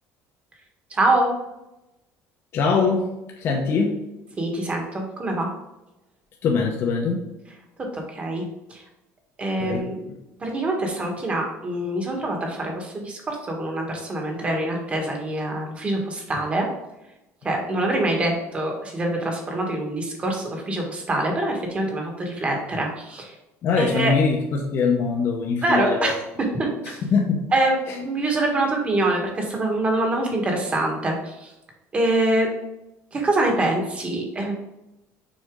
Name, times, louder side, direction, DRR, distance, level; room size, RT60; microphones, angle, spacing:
voice 1, 0.9-1.3 4.4-5.5 7.9-8.4 8.7-8.8 9.4-10.0 10.4-16.7 17.4-23.3 23.7-24.1 25.6-26.2 26.6-27.0 27.5-31.5 31.9-32.5 33.1-34.5, right 2 dB, 20° right, 1 dB, 1.4 m, -25 dB
voice 2, 2.5-3.1 3.4-4.0 6.4-7.2 9.6-10.2 23.6-26.1 26.8-27.4 27.9-28.0, left 5 dB, 45° left, 0 dB, 0.9 m, -23 dB
6.4 x 4.3 x 3.7 m, 0.94 s
cardioid pair, 155°, 6 cm